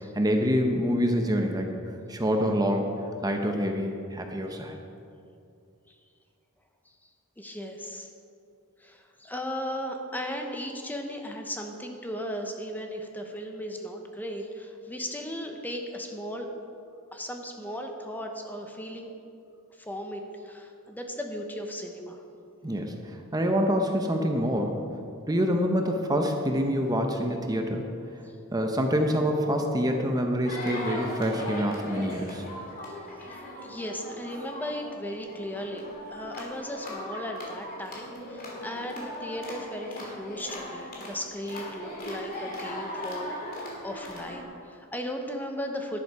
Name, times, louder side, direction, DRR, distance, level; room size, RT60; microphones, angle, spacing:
voice 1, 0.1-1.7 2.1-2.9 3.2-4.8 22.6-24.8 25.3-27.9 28.5-32.4, equal, 15° right, 3 dB, 0.8 m, -26 dB
voice 2, 7.4-8.1 8.8-16.5 17.1-19.1 19.8-22.2 28.2-28.3 32.9-35.8 36.1-43.4 43.8-46.0, equal, 10° left, 3 dB, 0.9 m, -36 dB
sound 1, 30.5-44.4, left 1 dB, 45° left, 2.9 m, -39 dB
11.0 x 11.0 x 4.8 m, 2.5 s
head